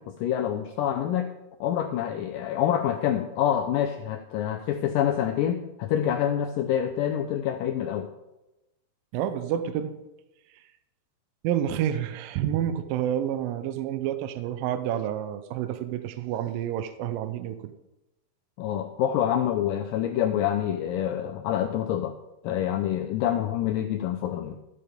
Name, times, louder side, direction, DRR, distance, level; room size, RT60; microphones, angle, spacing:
voice 1, 0.0-1.3 1.6-8.1 18.6-22.2 22.4-24.6, left 10 dB, 90° left, 5 dB, 1.9 m, -27 dB
voice 2, 9.1-9.9 10.5-10.6 11.4-17.7, right 10 dB, 85° right, 11 dB, 2.1 m, -29 dB
13.5 x 6.9 x 5.1 m, 0.96 s
omnidirectional pair, 4.6 m